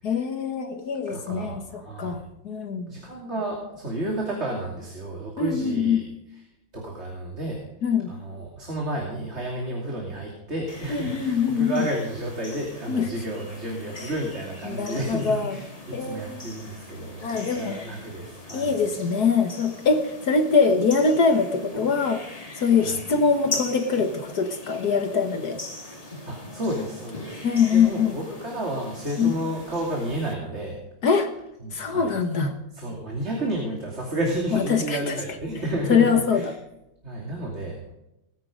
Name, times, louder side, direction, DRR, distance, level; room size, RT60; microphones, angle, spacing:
voice 1, 0.0-2.9 5.4-6.0 7.8-8.1 10.9-11.9 12.9-13.1 14.7-15.6 15.9-16.4 17.2-17.8 18.5-25.6 27.4-28.2 29.2-29.4 31.0-31.3 31.7-32.6 34.5-35.2 35.9-36.5, left 5 dB, 60° left, 7 dB, 1.8 m, -23 dB
voice 2, 1.1-2.2 2.9-6.0 6.7-7.6 8.1-18.7 22.8-23.0 26.3-27.4 27.7-30.8 31.6-32.1 32.7-36.5 37.0-37.9, right 1 dB, 35° right, -1 dB, 3.0 m, -31 dB
sound 1, 10.7-30.3, left 2 dB, 20° left, 2.1 m, -40 dB
19.0 x 9.9 x 5.2 m, 0.89 s
omnidirectional pair, 2.0 m